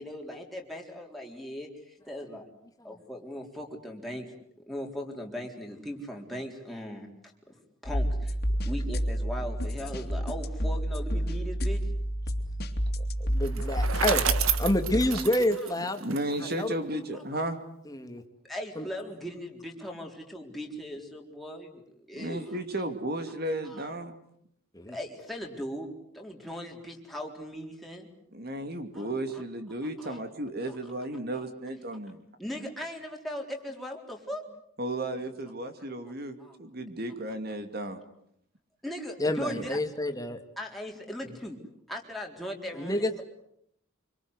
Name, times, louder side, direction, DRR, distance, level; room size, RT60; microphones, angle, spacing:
voice 1, 0.0-2.5 2.8-4.3 4.7-7.1 7.8-8.4 8.7-11.9 17.1-17.2 18.4-22.5 23.6-23.9 24.9-25.9 26.1-28.1 28.9-29.4 30.0-30.2 30.7-30.8 31.3-31.5 32.4-34.4 36.4-36.6 38.8-39.8 40.6-41.6 41.9-43.2, equal, ahead, 0 dB, 3.9 m, -39 dB
sound 1, 7.8-15.1, equal, 50° left, 2.8 m, -29 dB
voice 2, 13.2-14.2 14.6-16.0 16.5-16.8 17.9-18.2 18.8-18.9 24.7-25.0 39.2-40.4 42.7-43.2, left 1 dB, 15° left, 7 dB, 2.1 m, -28 dB
Bicycle, 13.4-16.6, right 8 dB, 90° right, 1.7 m, -30 dB
voice 3, 16.0-17.6 22.1-24.1 28.3-32.2 34.8-38.0, right 1 dB, 45° right, 8 dB, 2.7 m, -34 dB
26.0 x 25.0 x 8.2 m, 0.73 s
head